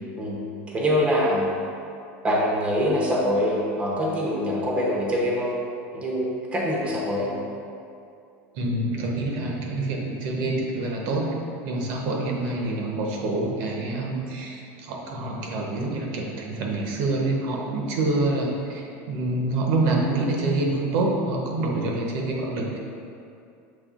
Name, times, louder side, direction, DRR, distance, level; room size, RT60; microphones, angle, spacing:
voice 1, 0.7-1.5 2.2-5.5 5.9-7.3, equal, 15° right, -4 dB, 0.7 m, -24 dB
voice 2, 8.5-11.3 11.6-22.8, right 2 dB, 60° right, -1 dB, 0.8 m, -26 dB
6.7 x 3.2 x 2.4 m, 2.5 s
supercardioid pair, 150°, 7 cm